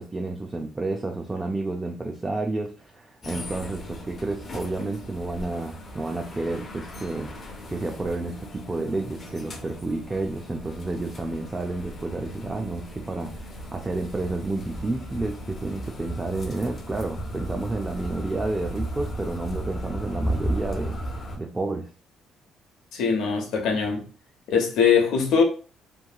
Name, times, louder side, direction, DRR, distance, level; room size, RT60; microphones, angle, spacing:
voice 1, 0.0-7.3 7.7-21.9, right 2 dB, 15° right, 0.3 m, -30 dB
sound 1, 3.2-21.4, equal, 30° left, 0.6 m, -35 dB
voice 2, 22.9-24.1 24.5-25.4, left 6 dB, 80° left, 0.8 m, -21 dB
2.9 x 2.7 x 2.2 m
cardioid pair, 145°, 0 cm